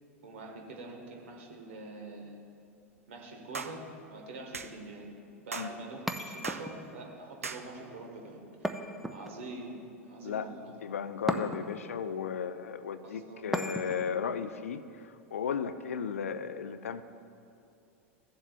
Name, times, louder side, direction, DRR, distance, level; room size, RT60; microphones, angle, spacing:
voice 1, 0.2-2.3 3.1-5.1 5.4-8.4 9.1-9.8 10.1-10.7 13.0-13.4, right 2 dB, 65° right, 1 dB, 1.5 m, -45 dB
sound 1, 3.5-3.8 4.5-4.7 5.5-5.7 6.4-6.7 7.4-7.6, right 4 dB, 85° right, 0.4 m, -38 dB
sound 2, 6.1-7.0 8.6-9.6 11.3-11.9 13.5-14.2, right 1 dB, ahead, 0.5 m, -36 dB
voice 2, 10.8-17.0, left 7 dB, 75° left, 12 dB, 0.4 m, -35 dB
15.5 x 7.4 x 2.5 m, 2.6 s
figure-of-eight pair, 90°, 7 cm